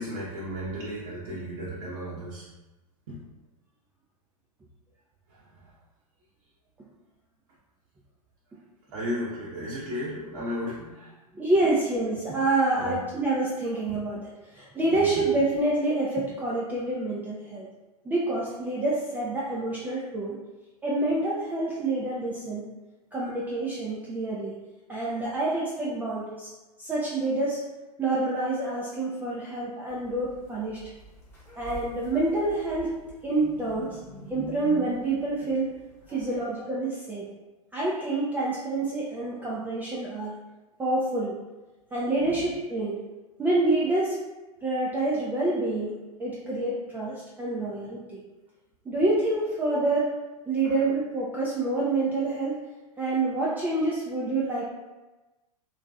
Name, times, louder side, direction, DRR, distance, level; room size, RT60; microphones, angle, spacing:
voice 1, 0.0-2.5 3.1-3.2 5.3-5.7 8.9-11.2 12.8-13.0 14.9-15.2 18.5-18.6 36.1-36.4 42.3-42.4 47.6-47.7 50.6-50.8, equal, 50° right, -7 dB, 0.7 m, -35 dB
voice 2, 11.3-17.7 18.0-20.4 20.8-22.7 23.1-24.6 24.9-26.5 26.8-27.6 28.0-30.8 31.6-32.9 33.2-34.0 34.3-35.7 36.1-37.2 37.7-40.3 40.8-41.3 41.9-43.0 43.4-44.2 44.6-48.2 48.9-50.1 50.5-52.6 53.0-54.6, right 2 dB, 10° right, -7 dB, 0.3 m, -27 dB
sound 1, 29.9-36.4, equal, 15° left, 1.0 m, -44 dB
3.0 x 2.5 x 2.3 m, 1.1 s
figure-of-eight pair, 95°, 20 cm